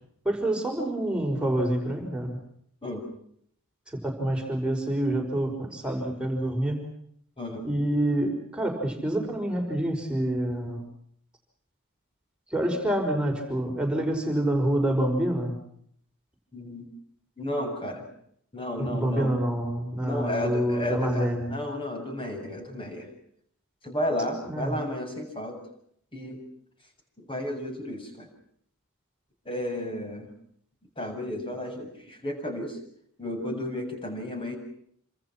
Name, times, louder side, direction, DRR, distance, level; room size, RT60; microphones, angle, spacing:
voice 1, 0.2-2.4 3.9-6.8 7.6-10.9 12.5-15.6 18.8-21.6 24.4-24.8, right 1 dB, 5° right, 1 dB, 5.6 m, -27 dB
voice 2, 7.4-7.7 16.5-16.9 17.4-18.1 18.5-19.3 20.0-23.1 23.8-25.6 26.1-26.4 27.2-28.3 29.5-30.3 31.0-32.8 33.2-34.6, left 1 dB, 25° left, 4 dB, 7.4 m, -32 dB
28.0 x 26.5 x 6.0 m, 0.67 s
head